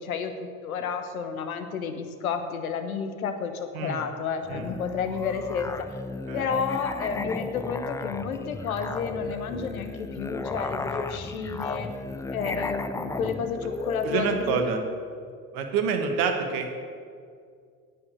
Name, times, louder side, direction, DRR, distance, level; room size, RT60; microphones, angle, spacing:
voice 1, 0.0-5.7 6.3-11.9 12.3-14.9, left 6 dB, 80° left, 8 dB, 1.0 m, -31 dB
Musical instrument, 4.4-14.6, left 3 dB, 10° left, 0.4 m, -35 dB
voice 2, 14.0-14.8 15.5-16.8, right 5 dB, 55° right, 5 dB, 1.6 m, -27 dB
9.5 x 8.9 x 6.9 m, 2.2 s
figure-of-eight pair, 65°, 42 cm